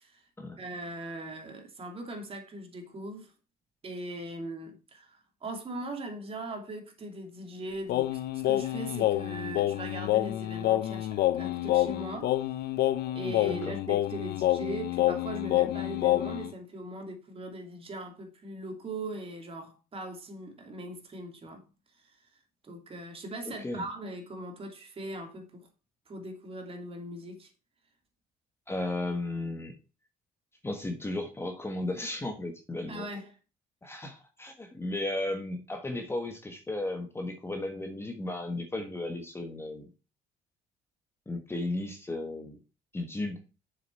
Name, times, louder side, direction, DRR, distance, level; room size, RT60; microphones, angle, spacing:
voice 1, 0.6-3.3 3.8-12.4 13.1-21.7 22.0-22.2 22.6-25.7 26.1-27.5 32.9-33.3 33.9-34.0, right 1 dB, 35° right, 3.0 m, -40 dB
Singing, 7.9-16.5, left 14 dB, 70° left, 0.7 m, -28 dB
voice 2, 23.4-23.8 28.7-29.7 30.6-33.1 33.8-39.9 41.3-42.6 42.9-43.4, left 2 dB, 15° left, 1.4 m, -35 dB
7.1 x 6.7 x 4.7 m
cardioid pair, 110°, 17 cm